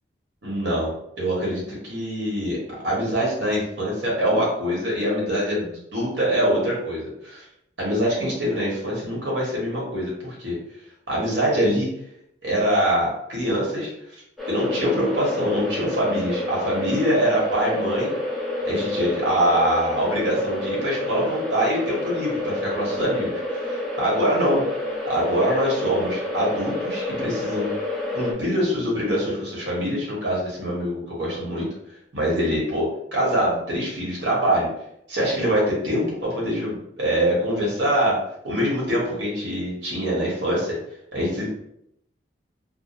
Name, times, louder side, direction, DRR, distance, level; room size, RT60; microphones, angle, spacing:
voice 1, 0.4-2.6 2.8-7.4 7.8-10.6 11.1-11.9 12.4-13.9 14.5-18.1 18.6-24.6 25.1-27.7 28.1-31.7 32.1-34.7 35.1-38.2 38.4-40.8 41.1-41.5, equal, 85° right, -4 dB, 1.1 m, -24 dB
sound 1, 14.4-28.3, left 1 dB, ahead, 0.5 m, -29 dB
2.5 x 2.0 x 2.9 m, 0.76 s
head